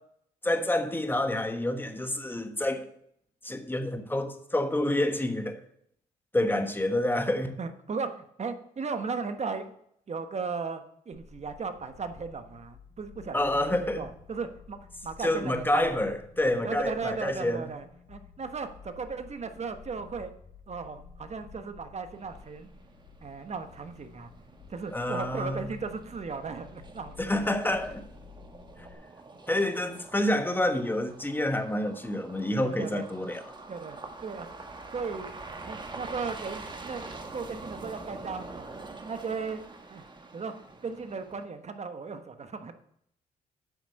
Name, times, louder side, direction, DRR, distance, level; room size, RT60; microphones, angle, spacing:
voice 1, 0.4-2.9 3.4-5.6 6.3-7.5 13.3-14.1 15.2-17.7 24.9-25.7 27.2-28.0 29.5-33.4, left 1 dB, 10° left, 1.4 m, -28 dB
voice 2, 7.6-9.7 10.1-15.9 16.6-20.3 20.7-22.7 23.2-24.3 24.7-27.2 32.6-33.1 33.7-34.5 34.9-35.3 35.6-39.6 39.9-40.0 40.3-40.5 40.8-42.7, right 5 dB, 45° right, 1.2 m, -36 dB
sound 1, 11.1-28.9, left 5 dB, 75° left, 1.7 m, -52 dB
sound 2, 22.1-41.5, right 3 dB, 30° right, 1.5 m, -46 dB
8.9 x 6.1 x 6.4 m
cardioid pair, 70°, 16 cm